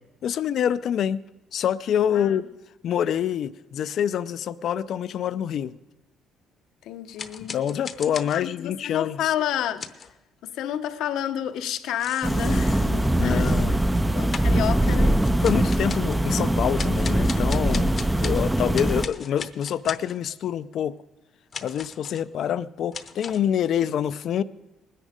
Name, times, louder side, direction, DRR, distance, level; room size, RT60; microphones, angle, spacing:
voice 1, 0.2-1.2 1.5-2.5 2.8-5.8 7.4-9.3 13.2-13.8 15.4-18.0 18.2-20.9 21.6-24.4, left 9 dB, 55° left, 0.4 m, -26 dB
voice 2, 6.8-7.7 8.3-9.9 10.4-13.5 14.1-15.2, left 10 dB, 75° left, 0.9 m, -30 dB
sound 1, 7.2-8.8 9.8-10.1 11.6-11.7 12.0-14.0 14.3-16.2 16.8-18.5 18.7-20.2 21.5-22.3 22.9-23.5, left 6 dB, 40° left, 0.8 m, -38 dB
sound 2, 12.2-19.1, right 1 dB, 5° right, 0.4 m, -22 dB
20.0 x 10.0 x 5.0 m
cardioid pair, 145°, 0 cm